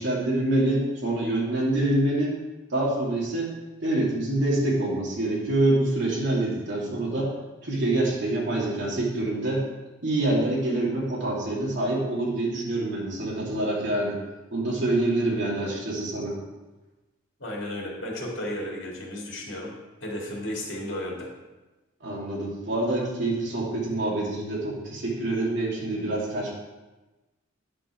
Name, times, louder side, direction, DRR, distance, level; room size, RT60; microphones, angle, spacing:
voice 1, 0.0-2.4 2.7-7.3 7.6-9.6 10.0-14.2 14.5-16.4 22.0-26.5, right 2 dB, 60° right, -4 dB, 2.7 m, -26 dB
voice 2, 17.4-19.7 20.0-21.3, left 1 dB, 60° left, -2 dB, 2.3 m, -34 dB
9.6 x 5.9 x 4.5 m, 1.1 s
head